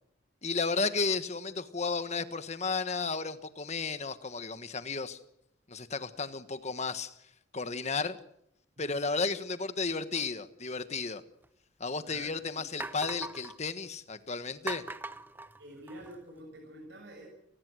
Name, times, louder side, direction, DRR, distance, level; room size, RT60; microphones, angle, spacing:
voice 1, 0.4-5.2 5.7-7.1 7.5-8.2 8.8-11.2 11.8-14.8, left 4 dB, 35° left, 11 dB, 1.5 m, -33 dB
sound 1, 11.4-11.5 12.2-12.3 12.8-13.6 14.7-16.2, right 2 dB, 10° right, 0.9 m, -40 dB
voice 2, 12.0-12.7 15.6-17.3, right 1 dB, 65° right, 0 dB, 7.0 m, -48 dB
29.0 x 19.5 x 6.5 m, 0.76 s
head